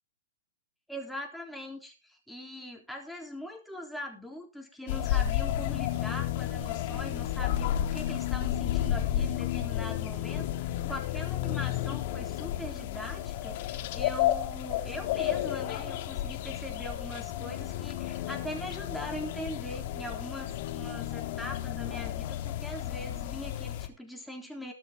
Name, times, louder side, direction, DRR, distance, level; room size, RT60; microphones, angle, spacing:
voice 1, 0.9-24.7, equal, ahead, 1 dB, 3.6 m, -41 dB
sound 1, 4.9-23.9, left 12 dB, 50° left, 1.8 m, -32 dB
20.5 x 7.1 x 3.8 m, 0.31 s
hypercardioid pair, 125°, 0 cm